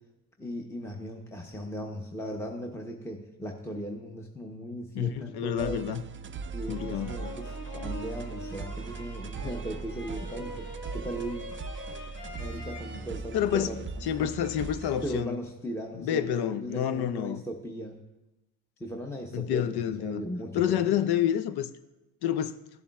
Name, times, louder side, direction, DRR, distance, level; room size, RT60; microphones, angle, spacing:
voice 1, 0.4-5.8 6.5-10.7 10.9-11.5 12.4-13.7 14.2-14.3 15.0-18.0 18.8-20.8, equal, 5° left, 0.8 m, -37 dB
voice 2, 4.9-6.0 6.7-7.1 13.3-15.4 15.9-17.4 19.3-20.2 20.5-21.7 22.2-22.6, left 10 dB, 75° left, 0.6 m, -28 dB
sound 1, 5.6-15.2, right 4 dB, 30° right, 0.4 m, -39 dB
sound 2, 6.7-13.0, left 1 dB, 50° left, 2.1 m, -43 dB
14.5 x 7.1 x 2.3 m
cardioid pair, 70°, 40 cm